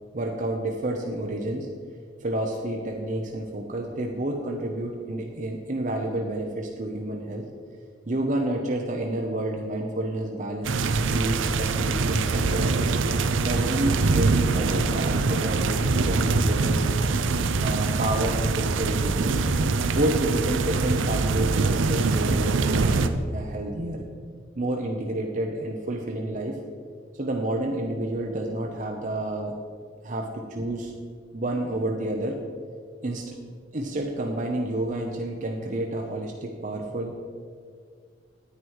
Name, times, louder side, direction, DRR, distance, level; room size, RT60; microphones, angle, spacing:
voice 1, 0.1-1.7 2.2-7.5 8.1-12.9 13.4-16.9 17.6-19.4 19.9-24.1 24.6-26.6 27.1-29.6 30.0-30.9 31.3-32.4 33.0-33.4 33.7-37.2, right 1 dB, 40° right, 1 dB, 0.7 m, -29 dB
sound 1, 10.6-23.1, right 3 dB, 80° right, 0.5 m, -24 dB
9.8 x 9.3 x 4.7 m, 2.1 s
head